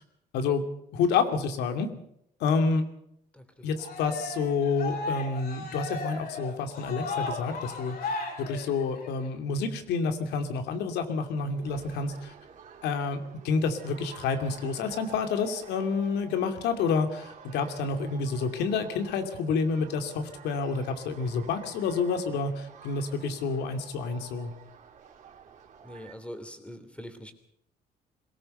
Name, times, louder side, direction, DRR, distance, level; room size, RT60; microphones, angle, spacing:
voice 1, 0.3-0.6 0.9-1.9 2.4-2.8 3.6-12.3 12.8-24.5, left 5 dB, 80° left, 7 dB, 2.7 m, -29 dB
voice 2, 3.3-3.7 25.8-27.3, equal, 5° left, 9 dB, 3.1 m, -43 dB
Cheering, 3.8-9.3, left 3 dB, 60° left, 5.6 m, -36 dB
sound 1, 11.4-26.2, right 7 dB, 50° right, 3.8 m, -50 dB
22.0 x 17.5 x 6.7 m, 0.76 s
cardioid pair, 110°, 17 cm